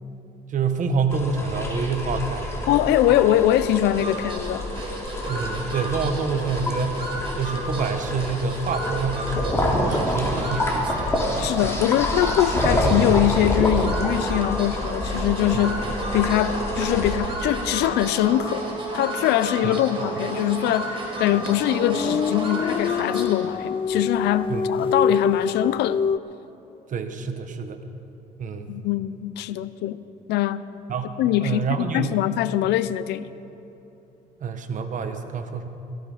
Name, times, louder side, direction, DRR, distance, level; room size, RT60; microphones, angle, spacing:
voice 1, 0.5-2.6 5.3-11.1 11.6-11.7 15.5-15.7 19.6-19.8 24.5-24.6 26.9-27.8 28.4-28.8 30.9-32.1 34.4-35.7, right 4 dB, 50° right, 1.3 m, -27 dB
sound 1, 1.1-17.1, left 1 dB, 15° left, 3.1 m, -27 dB
voice 2, 2.7-4.7 11.4-15.9 16.1-18.7 18.9-26.0 28.7-30.0 30.3-30.6 31.2-33.3, left 13 dB, 80° left, 0.6 m, -23 dB
sound 2, 3.9-23.6, right 1 dB, 30° right, 4.7 m, -33 dB
sound 3, 21.4-26.2, left 6 dB, 30° left, 0.4 m, -25 dB
17.0 x 16.0 x 5.0 m
cardioid pair, 110°, 17 cm